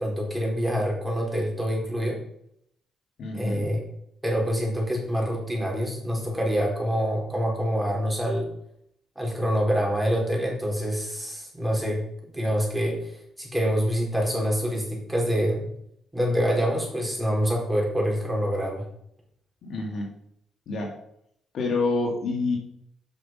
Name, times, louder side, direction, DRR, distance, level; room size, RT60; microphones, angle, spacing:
voice 1, 0.0-2.2 3.3-3.8 4.2-8.5 9.2-12.0 12.3-15.7 16.1-18.8, equal, 10° right, -2 dB, 4.2 m, -26 dB
voice 2, 3.2-3.7 19.6-20.1 20.7-20.9 21.5-22.6, left 3 dB, 65° left, 1 dB, 2.0 m, -27 dB
8.4 x 5.9 x 5.3 m, 0.73 s
supercardioid pair, 60°, 0 cm